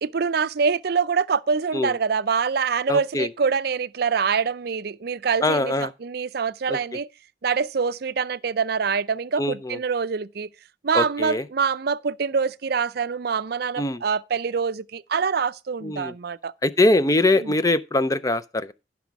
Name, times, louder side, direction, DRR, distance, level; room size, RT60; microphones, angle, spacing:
voice 1, 0.0-7.1 7.4-10.5 10.8-16.5 17.3-17.5, right 5 dB, 55° right, 0.5 m, -25 dB
voice 2, 2.9-3.3 5.4-5.9 6.7-6.8 9.4-9.8 10.9-11.4 13.8-14.0 15.8-16.1 16.6-18.7, left 2 dB, 20° left, 0.5 m, -22 dB
14.5 x 6.1 x 4.6 m
head